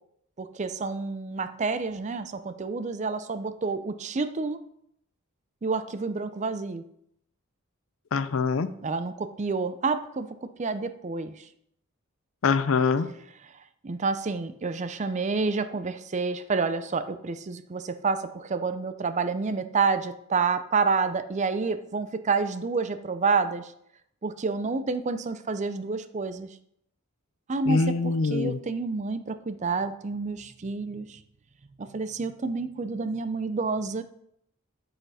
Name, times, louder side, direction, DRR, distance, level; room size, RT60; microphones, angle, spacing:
voice 1, 0.4-4.6 5.6-6.8 8.8-10.3 10.6-11.3 13.8-23.7 24.2-26.5 27.5-31.2 31.8-34.0, right 4 dB, 35° right, 11 dB, 0.5 m, -29 dB
voice 2, 8.1-8.7 12.4-13.1 27.7-28.5, left 4 dB, 65° left, 14 dB, 0.5 m, -24 dB
9.0 x 5.8 x 4.2 m, 0.72 s
head